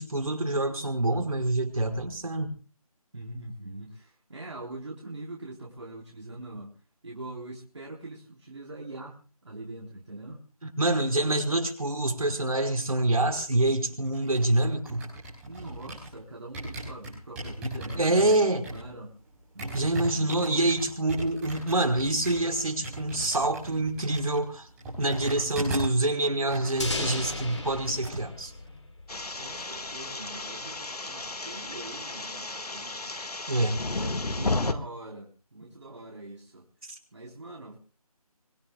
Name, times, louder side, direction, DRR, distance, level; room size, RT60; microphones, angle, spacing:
voice 1, 0.0-2.5 10.8-15.0 18.0-18.6 19.7-24.7 25.0-28.5 33.5-33.8 36.9-37.0, right 2 dB, 65° right, 3 dB, 5.0 m, -26 dB
voice 2, 3.1-6.7 7.0-10.4 11.2-11.3 15.5-18.3 18.7-19.1 19.5-20.5 29.4-33.1 33.8-36.7 37.1-37.8, right 2 dB, 50° right, -2 dB, 4.0 m, -43 dB
sound 1, 13.9-16.2 16.5-26.0 26.3-28.1 28.4-28.7, right 1 dB, 5° right, 4.9 m, -38 dB
sound 2, 26.8-29.6, left 2 dB, 50° left, 3.4 m, -35 dB
sound 3, 29.1-34.7, left 2 dB, 80° left, 1.8 m, -33 dB
25.0 x 22.0 x 2.3 m, 0.37 s
figure-of-eight pair, 175°, 19 cm